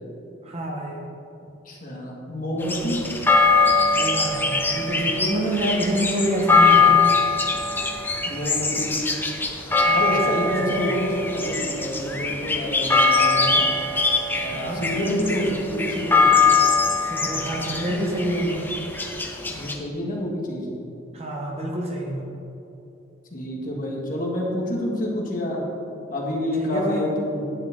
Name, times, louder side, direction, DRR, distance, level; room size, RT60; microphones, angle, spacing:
voice 1, 0.4-1.0 3.9-7.0 9.8-10.9 14.5-14.8 17.1-18.7 21.1-22.2 26.6-27.1, equal, 30° right, -1 dB, 1.2 m, -27 dB
voice 2, 1.7-3.0 8.2-8.9 9.9-13.7 14.4-16.2 19.5-20.7 23.3-25.6 26.1-27.4, left 1 dB, 40° left, -3 dB, 1.8 m, -28 dB
sound 1, 2.6-19.7, left 4 dB, 10° left, 0.7 m, -22 dB
11.0 x 8.9 x 3.9 m, 2.8 s
head